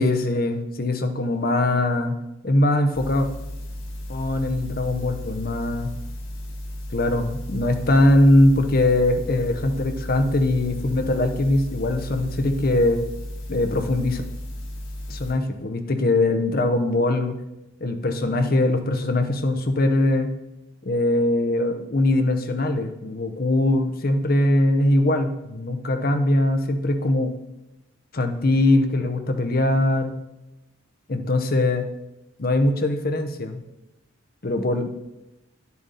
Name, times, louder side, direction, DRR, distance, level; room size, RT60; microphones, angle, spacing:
voice 1, 0.0-2.2 2.4-3.3 4.1-5.9 6.9-13.0 13.5-14.2 15.1-17.4 17.8-20.3 20.8-27.3 28.1-30.1 31.1-31.8 32.4-33.6 34.4-35.0, left 1 dB, 45° left, 6 dB, 0.8 m, -21 dB
sound 1, 2.9-15.3, left 1 dB, 75° left, 2.7 m, -34 dB
10.5 x 6.9 x 4.1 m, 0.94 s
head